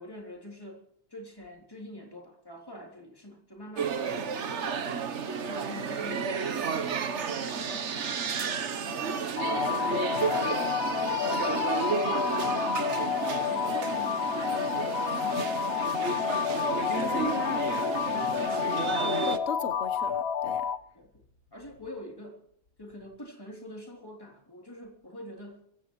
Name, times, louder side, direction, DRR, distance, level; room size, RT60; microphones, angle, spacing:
voice 1, 0.0-4.9 5.5-8.4 8.8-9.3 9.5-16.4 18.1-19.3 20.9-21.1 21.5-22.4 22.8-25.6, left 1 dB, 20° left, 1 dB, 3.5 m, -46 dB
sound 1, 3.8-19.4, right 6 dB, 90° right, 1.4 m, -32 dB
sound 2, 9.4-20.8, left 8 dB, 65° left, 1.0 m, -30 dB
voice 2, 17.0-17.7 19.0-20.6, left 6 dB, 85° left, 8 dB, 1.4 m, -36 dB
23.0 x 16.0 x 3.1 m, 0.69 s
omnidirectional pair, 1.1 m